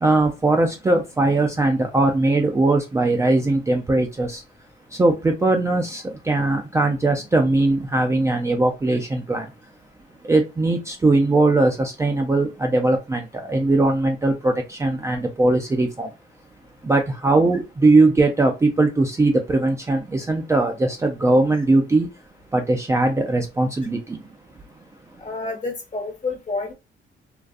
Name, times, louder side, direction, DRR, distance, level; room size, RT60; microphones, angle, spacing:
voice 1, 0.0-4.4 4.9-9.5 10.2-16.1 16.8-22.1 22.5-24.2, right 2 dB, 15° right, 0.3 m, -20 dB
voice 2, 25.2-26.7, left 3 dB, 40° left, 1.1 m, -29 dB
2.4 x 2.3 x 2.4 m
cardioid pair, 90°, 20 cm